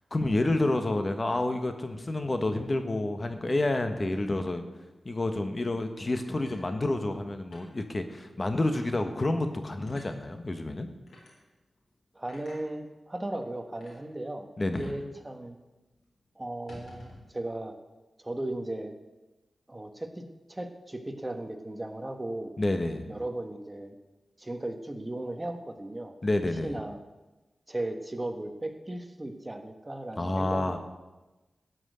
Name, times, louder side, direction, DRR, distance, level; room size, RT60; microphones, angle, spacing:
voice 1, 0.1-4.6 5.0-10.9 14.6-14.9 22.6-23.1 26.2-26.7 30.2-30.8, left 2 dB, 35° left, 7 dB, 1.3 m, -29 dB
sound 1, 6.2-7.2 7.5-7.7 8.1-8.2 8.7-9.0 9.9-10.1 11.1-11.3 12.3-12.6 13.4-13.5 13.8-14.0 14.8-15.1 15.3-15.4 15.8-16.0 16.5-17.3, left 1 dB, 90° left, 4.4 m, -51 dB
voice 2, 12.1-15.6 16.4-17.7 18.2-18.9 19.7-22.5 23.1-23.9 24.4-26.1 26.6-27.0 27.7-30.8, right 1 dB, 20° right, 6 dB, 1.3 m, -36 dB
13.0 x 6.2 x 9.2 m, 1.1 s
wide cardioid pair, 70°, 0 cm